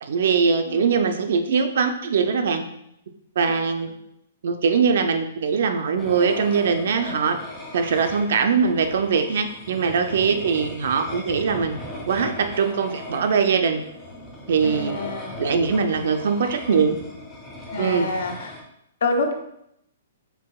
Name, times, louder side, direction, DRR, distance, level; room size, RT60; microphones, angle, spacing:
voice 1, 0.0-2.6 3.4-3.9 4.4-7.4 7.7-11.8 12.1-13.8 14.5-15.0 15.4-17.0 17.8-18.1, right 5 dB, 55° right, 6 dB, 0.4 m, -21 dB
voice 2, 0.7-1.0 3.5-3.6 10.3-10.4 14.6-15.3 17.7-18.6 19.0-19.4, left 2 dB, 75° left, 4 dB, 0.7 m, -27 dB
sound 1, 6.0-18.6, left 1 dB, 5° left, 0.5 m, -38 dB
4.6 x 3.4 x 2.3 m, 0.77 s
hypercardioid pair, 170°, 0 cm